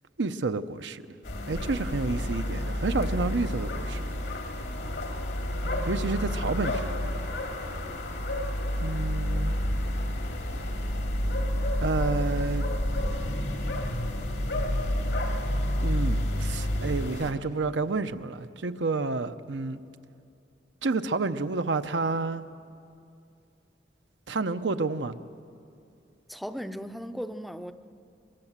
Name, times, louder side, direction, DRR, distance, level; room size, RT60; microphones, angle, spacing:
voice 1, 0.2-1.0 1.5-4.1 5.9-7.3 8.8-9.5 11.8-12.7 15.8-19.8 20.8-22.4 24.3-25.2, right 3 dB, 85° right, 0.8 m, -30 dB
sound 1, 1.2-17.3, left 1 dB, 85° left, 2.4 m, -29 dB
voice 2, 26.3-27.7, equal, ahead, 0.5 m, -36 dB
24.5 x 22.0 x 7.4 m
head